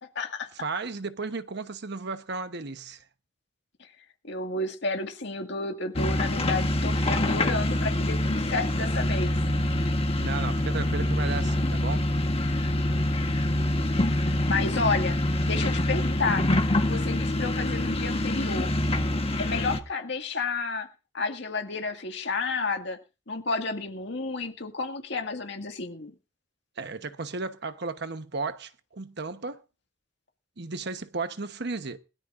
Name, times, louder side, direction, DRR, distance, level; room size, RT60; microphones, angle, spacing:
voice 1, 0.0-0.5 4.2-9.4 13.4-13.7 14.5-16.5 16.8-18.7 19.4-20.9 21.1-23.0 23.3-26.1, left 3 dB, 65° left, 2.1 m, -31 dB
voice 2, 0.5-3.0 10.2-12.1 26.8-29.6 30.6-32.0, right 4 dB, 60° right, 1.1 m, -34 dB
sound 1, 6.0-19.8, left 1 dB, 30° left, 1.3 m, -25 dB
21.0 x 12.5 x 2.6 m
head